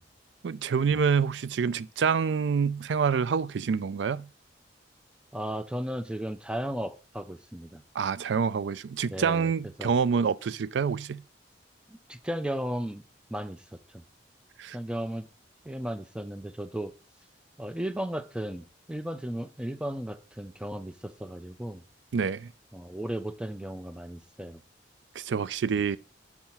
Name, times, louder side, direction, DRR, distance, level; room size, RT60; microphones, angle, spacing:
voice 1, 0.4-4.3 8.0-11.2 14.6-14.8 22.1-22.5 25.2-26.0, right 6 dB, 70° right, 0.4 m, -27 dB
voice 2, 5.3-7.8 9.0-9.5 9.8-9.9 11.9-13.0 13.3-13.6 13.9-14.0 14.7-15.3 15.6-16.9 17.6-21.8 22.7-24.6, equal, 5° right, 0.5 m, -35 dB
5.7 x 5.6 x 4.4 m
head